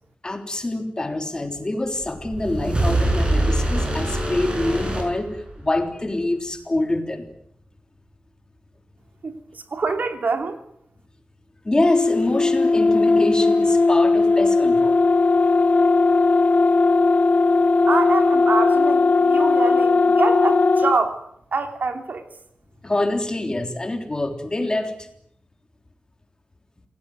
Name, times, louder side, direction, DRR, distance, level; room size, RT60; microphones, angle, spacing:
voice 1, 0.2-7.3 11.7-15.0 22.8-25.1, left 2 dB, 25° left, 6 dB, 3.5 m, -25 dB
sound 1, 2.0-5.8, right 1 dB, 30° right, 7.1 m, -24 dB
voice 2, 9.2-10.6 17.9-21.2 21.5-22.3, right 4 dB, 60° right, 7 dB, 3.0 m, -25 dB
sound 2, 11.9-21.0, left 3 dB, 45° left, 1.0 m, -17 dB
27.5 x 18.0 x 9.4 m, 0.74 s
wide cardioid pair, 130°, 3 cm